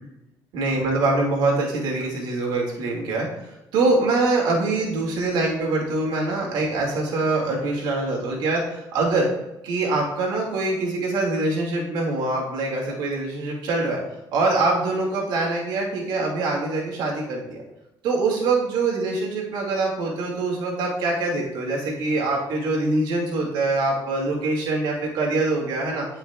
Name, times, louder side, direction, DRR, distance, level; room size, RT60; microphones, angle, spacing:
voice 1, 0.5-9.3 9.6-14.0 14.3-17.6 18.0-26.1, right 2 dB, 80° right, -1 dB, 2.2 m, -24 dB
15.5 x 5.6 x 2.3 m, 0.95 s
cardioid pair, 135°, 8 cm